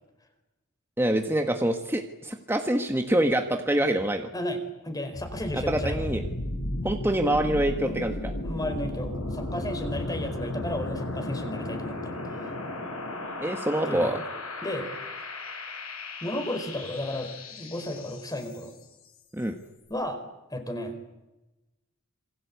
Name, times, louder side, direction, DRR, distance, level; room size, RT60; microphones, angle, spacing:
voice 1, 1.0-4.3 5.5-6.2 6.8-8.3 13.4-14.2 19.3-19.6, right 1 dB, 10° right, 4 dB, 1.5 m, -26 dB
voice 2, 4.3-6.0 7.8-7.9 8.4-12.1 13.8-14.2 14.6-14.9 16.2-18.7 19.9-20.2 20.5-20.9, left 1 dB, 15° left, 7 dB, 4.5 m, -33 dB
sound 1, 5.1-18.9, left 1 dB, 75° left, 7.1 m, -35 dB
27.0 x 24.5 x 8.4 m, 1.0 s
head